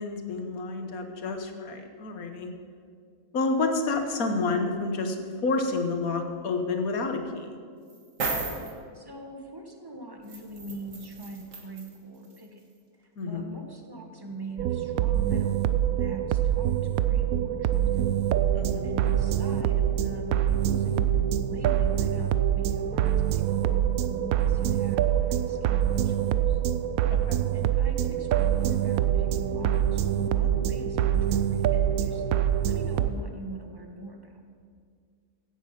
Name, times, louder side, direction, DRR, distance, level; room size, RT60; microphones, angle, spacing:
voice 1, 0.0-2.5 3.3-7.5 13.2-13.4 18.5-18.9 27.1-27.4, left 3 dB, 80° left, 5 dB, 1.7 m, -29 dB
sound 1, 7.9-8.7 10.3-12.0 12.3-12.4, right 3 dB, 65° right, 2.0 m, -34 dB
voice 2, 8.9-12.6 13.0-18.1 18.8-26.6 27.5-34.4, right 2 dB, 15° right, 3 dB, 1.3 m, -42 dB
sound 2, 14.6-33.1, right 10 dB, 80° right, 1.1 m, -25 dB
16.0 x 8.1 x 5.9 m, 2.1 s
omnidirectional pair, 1.5 m